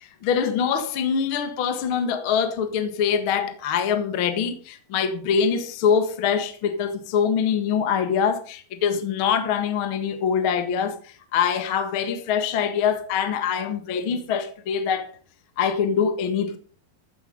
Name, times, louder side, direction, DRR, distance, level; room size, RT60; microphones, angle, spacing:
voice 1, 0.2-11.0 11.3-15.1 15.6-16.6, left 7 dB, 60° left, 1.4 m, -24 dB
14.5 x 8.2 x 5.4 m
omnidirectional pair, 4.9 m